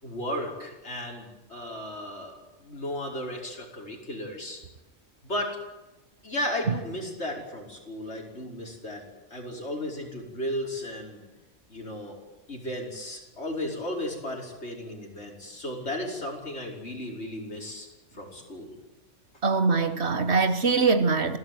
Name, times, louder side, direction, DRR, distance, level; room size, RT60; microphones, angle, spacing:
voice 1, 0.0-4.6 5.2-5.6 6.2-9.0 9.3-11.3 11.7-12.2 12.5-17.9 18.1-18.7, left 1 dB, 60° left, 5.8 m, -35 dB
voice 2, 19.4-21.4, right 4 dB, 60° right, 1.7 m, -23 dB
27.0 x 18.0 x 9.4 m
omnidirectional pair, 1.3 m